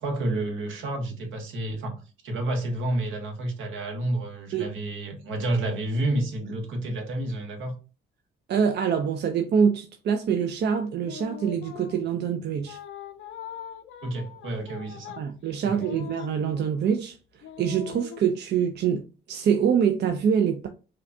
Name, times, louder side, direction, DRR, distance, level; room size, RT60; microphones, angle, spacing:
voice 1, 0.0-7.7 14.0-15.1 15.6-16.0, right 1 dB, 80° right, 1.2 m, -30 dB
voice 2, 8.5-12.8 15.2-17.2 17.6-20.7, right 7 dB, 60° right, 0.5 m, -25 dB
sound 1, 11.0-12.1 12.6-16.9 17.4-18.2, left 10 dB, 70° left, 0.5 m, -42 dB
5.0 x 2.3 x 2.7 m
cardioid pair, 90°, 20 cm